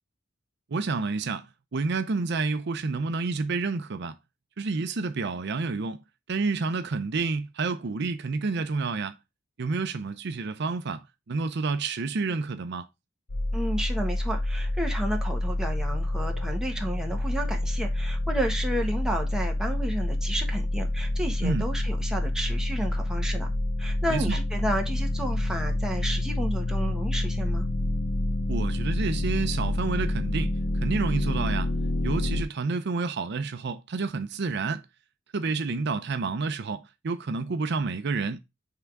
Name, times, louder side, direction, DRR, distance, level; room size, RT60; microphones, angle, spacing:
voice 1, 0.7-4.2 4.6-6.0 6.3-9.1 9.6-12.9 21.4-21.6 24.1-24.4 28.5-30.5 30.8-31.7 32.0-34.8 35.3-38.4, right 4 dB, 60° right, 0.5 m, -29 dB
sound 1, 13.3-32.4, left 1 dB, 55° left, 0.8 m, -28 dB
voice 2, 13.5-23.5 23.8-27.7, right 1 dB, 5° right, 1.2 m, -32 dB
5.8 x 3.6 x 4.5 m
head